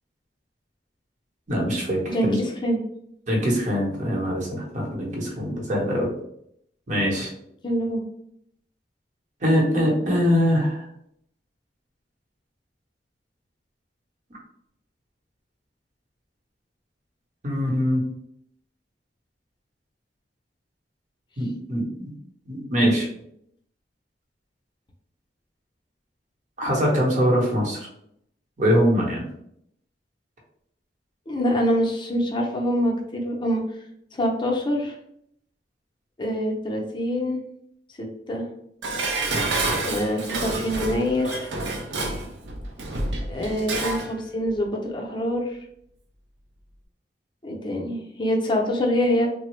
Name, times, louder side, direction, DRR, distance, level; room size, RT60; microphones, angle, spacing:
voice 1, 1.5-2.4 3.3-6.1 6.9-7.3 9.4-10.9 17.4-18.0 21.4-22.1 22.5-23.1 26.6-27.8 28.6-29.2, equal, 45° right, -2 dB, 0.9 m, -23 dB
voice 2, 2.1-2.8 7.6-8.0 31.3-33.6 34.1-34.9 36.2-37.4 38.0-38.5 39.9-41.5 43.3-45.6 47.4-49.3, equal, 25° left, 0 dB, 0.5 m, -25 dB
Dishes pots and pans, 38.8-44.1 44.4-44.5, right 2 dB, 90° right, 0.6 m, -28 dB
3.3 x 2.0 x 3.0 m, 0.73 s
head